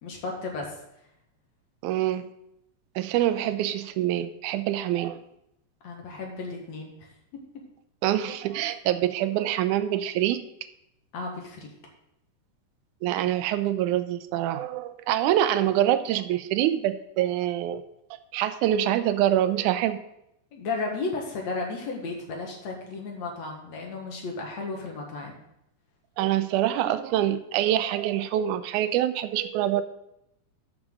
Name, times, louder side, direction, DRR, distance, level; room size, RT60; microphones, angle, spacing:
voice 1, 0.0-0.8 5.8-6.9 7.3-7.4 11.1-11.7 20.5-25.4, left 3 dB, 60° left, 0 dB, 2.6 m, -34 dB
voice 2, 1.8-2.2 3.0-5.2 8.0-10.4 13.0-17.8 18.3-20.0 26.2-29.8, right 12 dB, 80° right, 12 dB, 1.9 m, -25 dB
12.5 x 6.2 x 3.8 m, 0.81 s
omnidirectional pair, 3.8 m